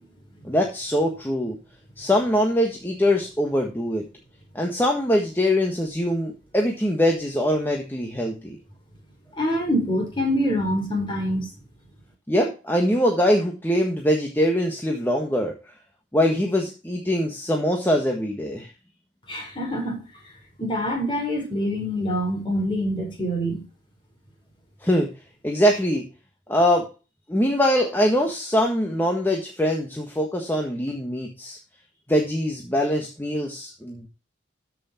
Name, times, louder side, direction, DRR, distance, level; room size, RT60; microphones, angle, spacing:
voice 1, 0.4-1.6 2.0-4.1 4.5-8.6 12.3-15.6 16.1-18.7 24.8-25.1 25.4-26.0 26.5-26.9 27.3-31.6 32.1-34.1, equal, 10° left, 1.6 m, -23 dB
voice 2, 9.4-11.5 19.3-20.0 20.6-23.6, equal, 25° left, 4.6 m, -25 dB
14.0 x 6.1 x 4.4 m
head